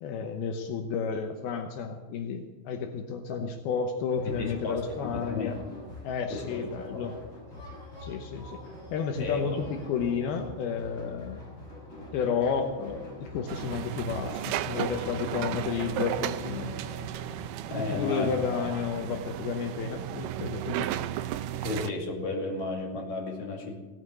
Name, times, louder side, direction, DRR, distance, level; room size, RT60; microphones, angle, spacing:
voice 1, 0.0-5.6 6.0-7.2 8.0-8.6 8.9-11.4 12.1-16.8 17.8-20.9, left 6 dB, 75° left, 4 dB, 2.8 m, -31 dB
sound 1, 4.1-17.4, left 2 dB, 25° left, 5.7 m, -45 dB
voice 2, 4.4-5.5 6.3-7.1 9.2-9.6 17.7-18.8 21.6-23.8, left 3 dB, 50° left, 0 dB, 3.5 m, -34 dB
sound 2, 13.5-21.9, right 12 dB, 80° right, 2.0 m, -34 dB
17.0 x 9.2 x 8.2 m, 1.2 s
omnidirectional pair, 4.6 m